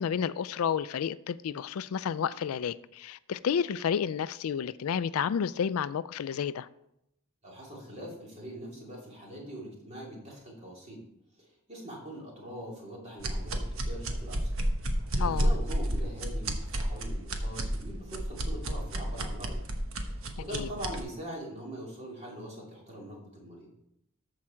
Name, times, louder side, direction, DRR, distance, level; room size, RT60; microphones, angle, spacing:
voice 1, 0.0-6.7 15.2-15.5 20.5-20.7, left 7 dB, 85° left, 0.4 m, -31 dB
voice 2, 7.4-11.0 11.4-14.5 14.9-19.6 20.1-23.7, right 1 dB, 30° right, 2.7 m, -43 dB
sound 1, 13.2-21.0, right 1 dB, 75° right, 1.1 m, -31 dB
13.5 x 4.8 x 4.4 m
head